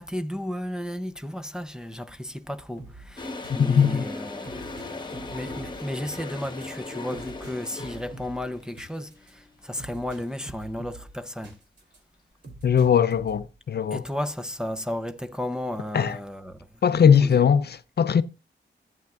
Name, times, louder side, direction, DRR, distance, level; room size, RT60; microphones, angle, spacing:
voice 1, 0.0-11.6 13.9-17.5, left 1 dB, 5° right, 0.5 m, -34 dB
sound 1, 2.8-12.0 12.4-13.6, right 2 dB, 65° right, 2.9 m, -47 dB
Toilet flush, 3.2-8.4, left 3 dB, 20° left, 1.3 m, -37 dB
voice 2, 3.7-4.0 12.6-14.0 15.9-16.2 16.8-18.2, left 7 dB, 55° left, 0.5 m, -20 dB
14.5 x 9.2 x 2.3 m
wide cardioid pair, 150°, 20 cm